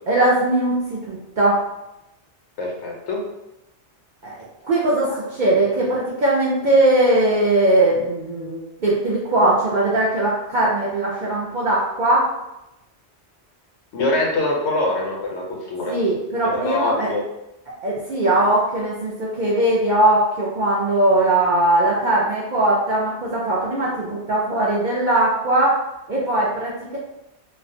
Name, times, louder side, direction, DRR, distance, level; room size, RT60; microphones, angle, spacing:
voice 1, 0.1-1.7 4.2-12.3 15.9-17.1 17.8-25.8 26.1-27.0, right 1 dB, 60° right, -6 dB, 0.5 m, -20 dB
voice 2, 2.6-3.3 5.1-5.2 13.9-16.0 16.4-17.3, left 2 dB, 75° left, 0 dB, 0.9 m, -24 dB
2.4 x 2.0 x 2.6 m, 0.92 s
omnidirectional pair, 1.2 m